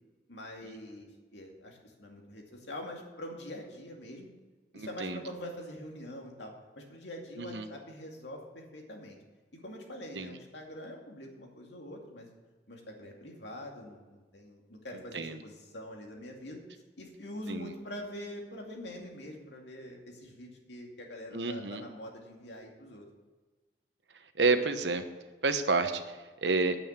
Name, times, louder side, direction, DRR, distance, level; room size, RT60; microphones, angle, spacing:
voice 1, 0.3-4.3 4.7-9.2 9.6-12.3 12.7-16.6 17.0-23.1, left 1 dB, 80° left, 1 dB, 2.4 m, -44 dB
voice 2, 4.7-5.2 7.4-7.7 10.1-10.4 15.1-15.4 17.5-17.7 21.3-21.8 24.4-25.0 25.4-26.8, right 3 dB, 85° right, 8 dB, 1.1 m, -30 dB
9.5 x 8.7 x 7.3 m, 1.3 s
head